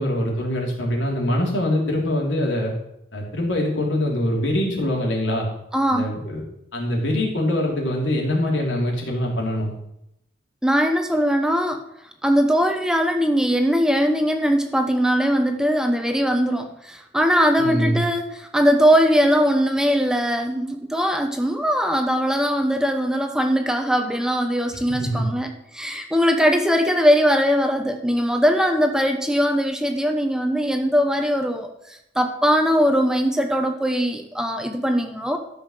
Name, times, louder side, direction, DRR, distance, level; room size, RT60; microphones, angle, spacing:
voice 1, 0.0-2.7 3.1-5.5 5.9-6.4 6.7-9.7 17.6-18.0 24.9-25.2, left 1 dB, 90° left, -1 dB, 3.4 m, -23 dB
voice 2, 5.7-6.1 10.6-11.8 12.2-35.4, equal, 5° right, 5 dB, 0.8 m, -20 dB
13.5 x 5.6 x 6.5 m, 0.81 s
head